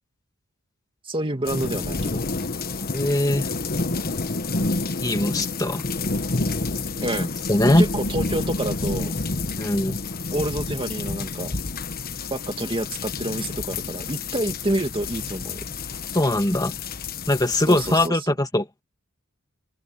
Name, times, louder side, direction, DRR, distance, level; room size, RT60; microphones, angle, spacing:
voice 1, 1.1-2.2 7.0-7.4 7.6-9.1 10.3-11.5 12.3-15.6 17.7-18.3, right 1 dB, 25° right, 2.3 m, -28 dB
sound 1, 1.5-18.1, left 3 dB, 45° left, 1.2 m, -29 dB
voice 2, 2.9-3.5 5.0-5.8 7.5-7.9 9.6-10.0 16.1-16.7 17.3-18.6, left 1 dB, 20° left, 2.2 m, -21 dB
head